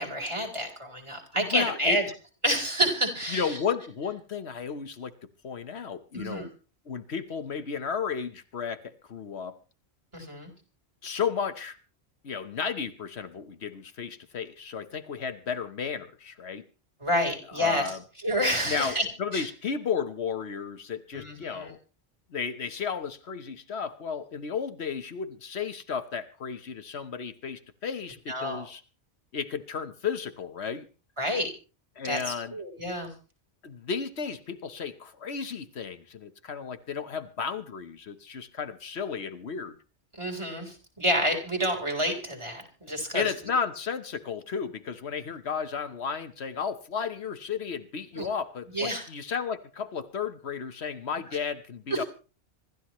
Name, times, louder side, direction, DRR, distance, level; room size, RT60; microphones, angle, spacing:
voice 1, 0.0-2.0 2.4-3.6 6.1-6.5 10.1-10.5 17.0-17.9 18.2-19.1 19.3-19.5 21.1-21.7 28.3-28.7 31.2-31.5 32.0-33.1 40.1-43.3 48.1-48.3 48.7-49.1 51.9-52.1, equal, 25° right, 3 dB, 4.1 m, -29 dB
voice 2, 1.3-2.0 3.3-5.1 5.4-6.5 6.9-9.6 11.0-11.8 12.2-16.6 17.5-18.0 18.6-21.8 22.3-28.8 29.3-30.9 32.0-32.5 33.6-39.8 43.1-52.0, left 6 dB, 70° left, 10 dB, 1.3 m, -33 dB
26.0 x 13.5 x 3.1 m, 0.35 s
omnidirectional pair, 1.1 m